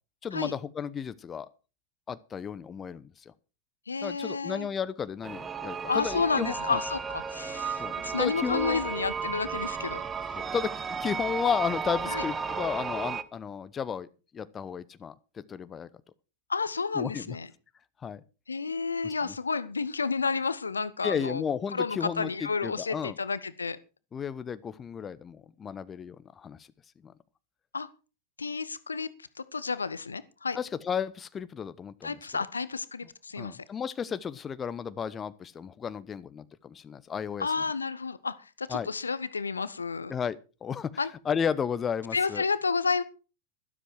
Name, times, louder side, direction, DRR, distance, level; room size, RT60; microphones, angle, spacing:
voice 1, 0.2-1.5 2.1-3.3 4.0-6.8 7.8-8.8 10.3-10.7 11.0-14.1 14.3-15.9 16.9-17.4 18.0-18.2 19.0-19.3 21.0-23.2 24.1-26.7 27.0-27.1 30.5-32.2 33.4-37.5 38.7-38.9 40.1-42.4, left 7 dB, 20° left, 0.8 m, -33 dB
voice 2, 3.9-4.7 5.9-10.0 12.1-12.2 16.5-17.5 18.5-21.4 21.7-23.8 27.7-27.9 28.4-29.1 29.5-30.6 32.0-33.6 37.4-40.1 41.0-41.1 42.1-43.0, left 4 dB, 75° left, 1.0 m, -31 dB
sound 1, 5.2-13.2, right 5 dB, 20° right, 0.9 m, -34 dB
12.5 x 12.5 x 4.6 m
figure-of-eight pair, 90°, 0 cm